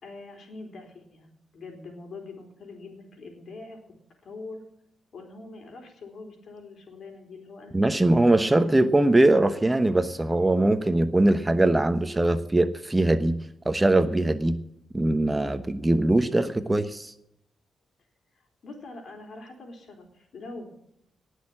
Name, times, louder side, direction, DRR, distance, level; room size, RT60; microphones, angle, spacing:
voice 1, 0.0-3.8 4.2-4.6 5.1-8.6 14.0-14.3 18.3-20.8, left 3 dB, 65° left, 4 dB, 4.3 m, -44 dB
voice 2, 7.7-13.4 13.6-14.6 14.9-17.1, right 2 dB, 20° right, 10 dB, 1.1 m, -21 dB
18.5 x 6.6 x 7.4 m, 0.78 s
cardioid pair, 65°, 0 cm